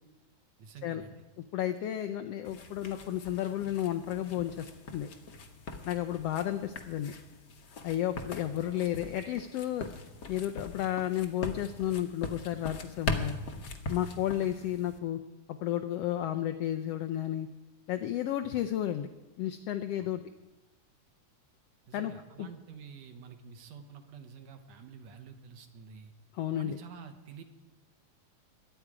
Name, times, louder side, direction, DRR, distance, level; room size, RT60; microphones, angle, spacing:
voice 1, 0.6-1.2 18.4-18.6 20.0-20.2 21.9-26.1 26.5-27.4, right 6 dB, 70° right, 7 dB, 2.1 m, -49 dB
voice 2, 1.5-5.1 5.8-7.1 7.8-9.9 10.3-13.4 13.9-15.2 15.5-17.5 17.9-19.1 19.4-20.2 21.9-22.1 22.4-22.5 26.3-26.8, left 12 dB, 90° left, 6 dB, 1.4 m, -32 dB
sound 1, 2.4-15.0, left 3 dB, 60° left, 1.1 m, -41 dB
22.0 x 9.0 x 4.9 m, 1.1 s
omnidirectional pair, 3.4 m